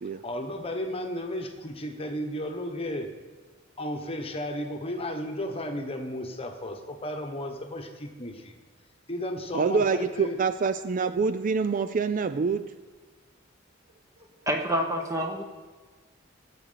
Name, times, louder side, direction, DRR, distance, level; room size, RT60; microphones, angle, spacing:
voice 1, 0.1-3.1 3.8-8.5 9.1-10.4, left 1 dB, 30° left, 4 dB, 1.3 m, -34 dB
voice 2, 9.5-12.7, right 5 dB, 40° right, 12 dB, 0.4 m, -26 dB
voice 3, 14.5-15.4, equal, 15° right, 3 dB, 1.3 m, -27 dB
16.0 x 7.9 x 5.7 m, 1.4 s
head